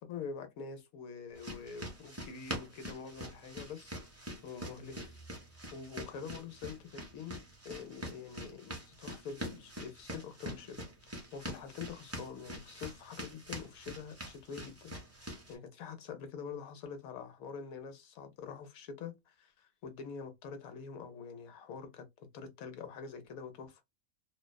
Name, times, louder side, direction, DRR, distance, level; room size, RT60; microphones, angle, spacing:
voice 1, 0.0-4.0 4.4-5.2 5.7-10.9 11.3-23.8, left 6 dB, 75° left, 1.1 m, -45 dB
sound 1, 1.3-15.5, equal, 15° right, 0.5 m, -45 dB
2.5 x 2.2 x 2.2 m
omnidirectional pair, 1.5 m